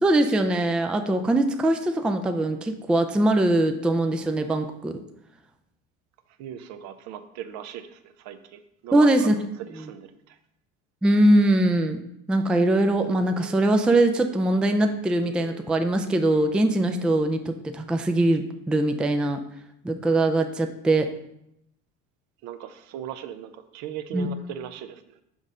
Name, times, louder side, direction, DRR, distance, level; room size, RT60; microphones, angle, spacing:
voice 1, 0.0-4.9 8.9-9.3 11.0-12.0 12.3-19.4 19.8-21.1 24.1-24.3, right 1 dB, 5° right, 6 dB, 0.3 m, -22 dB
voice 2, 6.4-10.4 22.4-25.2, right 10 dB, 65° right, 10 dB, 0.6 m, -38 dB
Wind instrument woodwind instrument, 12.6-17.1, right 13 dB, 50° right, 1.7 m, -46 dB
6.2 x 5.3 x 3.7 m, 0.78 s
cardioid pair, 120°, 30 cm